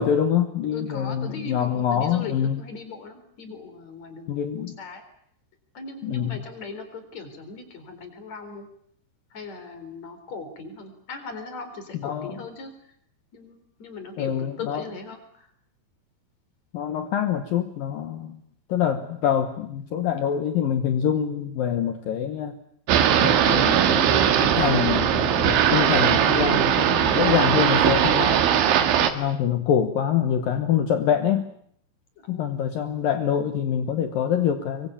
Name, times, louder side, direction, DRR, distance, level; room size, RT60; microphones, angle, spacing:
voice 1, 0.0-2.6 4.3-4.7 6.0-6.4 12.0-12.3 14.2-14.8 16.7-18.4 18.7-22.5 23.2-28.4 29.1-31.5 32.3-34.9, left 9 dB, 70° left, 8 dB, 2.2 m, -25 dB
voice 2, 0.7-4.3 4.6-5.0 5.7-8.7 9.3-12.7 13.3-15.5 32.2-32.6, left 4 dB, 35° left, 8 dB, 4.8 m, -39 dB
sound 1, 22.9-29.1, right 9 dB, 75° right, 4.0 m, -20 dB
25.5 x 23.0 x 8.6 m, 0.67 s
omnidirectional pair, 5.7 m